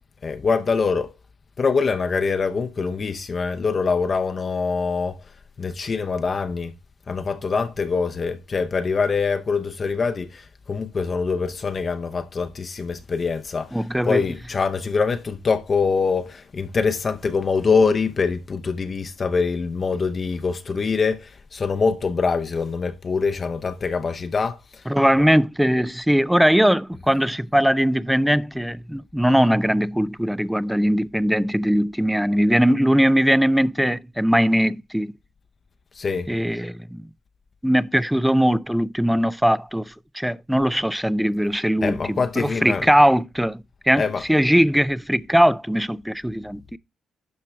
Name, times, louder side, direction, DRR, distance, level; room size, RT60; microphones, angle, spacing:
voice 1, 0.2-1.1 1.6-5.2 5.6-6.7 7.1-13.8 14.0-24.8 35.9-36.3 41.8-42.8 44.0-44.2, left 5 dB, 40° left, 0.7 m, -24 dB
voice 2, 13.7-14.2 24.9-35.1 36.3-37.1 37.6-46.8, equal, 5° right, 0.4 m, -20 dB
12.0 x 4.5 x 3.3 m
cardioid pair, 90°, 0 cm